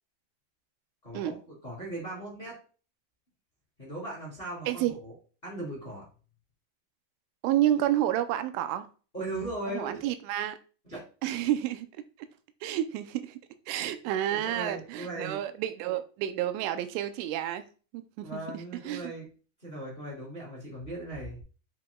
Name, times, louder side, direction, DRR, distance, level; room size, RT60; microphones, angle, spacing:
voice 1, 1.0-2.6 3.8-5.1 5.4-6.0 9.1-9.9 10.9-11.0 14.3-15.4 18.2-19.3 19.6-21.4, right 2 dB, 25° left, 1.3 m, -38 dB
voice 2, 7.4-8.9 9.7-10.6 11.2-11.9 12.6-13.4 13.7-17.6 17.9-18.3 18.5-19.0, right 12 dB, 85° right, 3.0 m, -30 dB
7.6 x 6.0 x 2.2 m
omnidirectional pair, 5.5 m